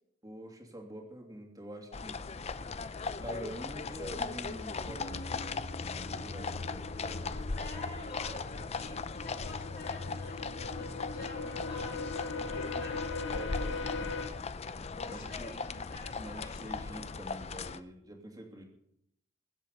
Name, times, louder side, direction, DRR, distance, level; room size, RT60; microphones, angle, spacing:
voice 1, 0.2-2.5 3.2-5.6 5.8-7.6 8.5-9.1 13.2-14.4 15.0-15.6 16.1-18.6, right 1 dB, 20° right, 1 dB, 2.9 m, -47 dB
sound 1, 1.9-17.8, left 4 dB, 35° left, 0.6 m, -38 dB
sound 2, 4.9-14.3, left 3 dB, 70° left, 2.1 m, -41 dB
voice 2, 7.5-13.1 14.9-16.7, left 2 dB, 50° left, -4 dB, 5.0 m, -48 dB
22.5 x 8.1 x 5.4 m, 0.73 s
head